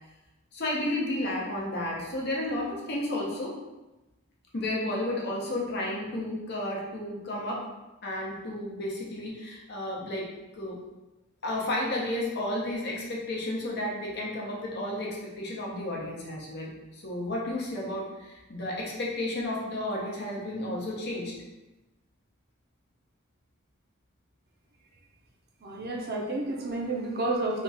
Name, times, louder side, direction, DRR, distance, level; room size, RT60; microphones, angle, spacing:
voice 1, 0.5-3.6 4.5-7.6 8.0-10.8 11.4-21.3, left 1 dB, 55° left, -3 dB, 0.8 m, -32 dB
voice 2, 25.6-27.6, right 2 dB, 50° right, 0 dB, 0.6 m, -30 dB
3.0 x 2.4 x 4.0 m, 1.1 s
head